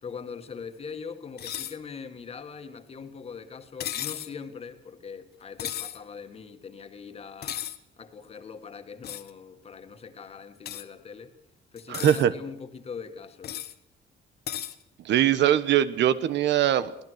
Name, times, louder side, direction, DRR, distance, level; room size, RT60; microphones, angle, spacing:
voice 1, 0.0-7.6 8.0-11.3 11.7-13.6, left 6 dB, 35° left, 1.9 m, -41 dB
sound 1, 1.4-1.8 3.8-4.3 5.6-6.0 7.4-7.8 9.0-9.3 10.6-10.8 11.8-12.2 13.4-13.7 14.5-14.7, left 11 dB, 60° left, 1.2 m, -34 dB
voice 2, 11.9-12.3 15.0-17.1, right 11 dB, 75° right, 1.2 m, -22 dB
24.0 x 19.0 x 6.5 m
cardioid pair, 165°, 18 cm